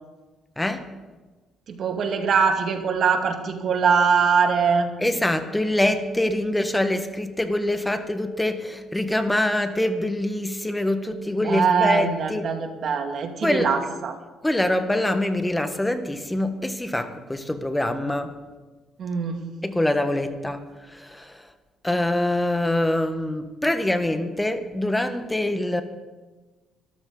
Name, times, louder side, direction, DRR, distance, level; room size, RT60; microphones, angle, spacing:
voice 1, 1.7-4.9 11.4-14.2 19.0-19.5, right 6 dB, 60° right, 4 dB, 2.4 m, -22 dB
voice 2, 5.0-12.5 13.4-13.7 14.4-18.4 19.6-21.5 21.8-25.8, left 1 dB, 10° left, 8 dB, 1.4 m, -24 dB
23.0 x 13.5 x 4.0 m, 1.3 s
supercardioid pair, 70°, 0 cm